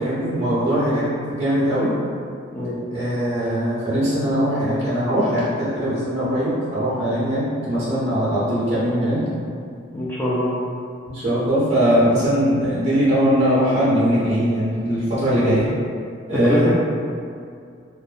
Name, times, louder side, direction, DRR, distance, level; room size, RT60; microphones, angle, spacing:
voice 1, 0.0-1.9 2.9-9.2 11.1-15.7 16.3-16.7, equal, 35° right, -10 dB, 0.6 m, -20 dB
voice 2, 9.9-10.5 15.4-15.6 16.3-16.7, left 1 dB, 10° left, -7 dB, 0.3 m, -23 dB
2.6 x 2.1 x 2.4 m, 2.3 s
head